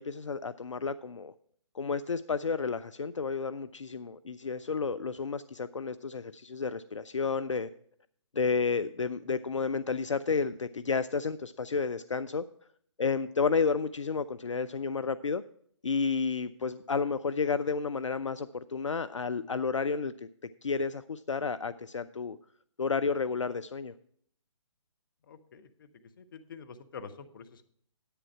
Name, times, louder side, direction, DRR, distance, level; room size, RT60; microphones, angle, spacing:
voice 1, 0.0-1.3 1.7-7.7 8.3-12.4 13.0-15.4 15.8-20.3 20.6-22.4 22.8-23.9, left 5 dB, 75° left, 13 dB, 0.4 m, -31 dB
voice 2, 25.3-25.9 26.2-27.6, left 6 dB, 45° left, 8 dB, 0.9 m, -47 dB
10.0 x 8.5 x 4.7 m, 0.63 s
figure-of-eight pair, 135°, 16 cm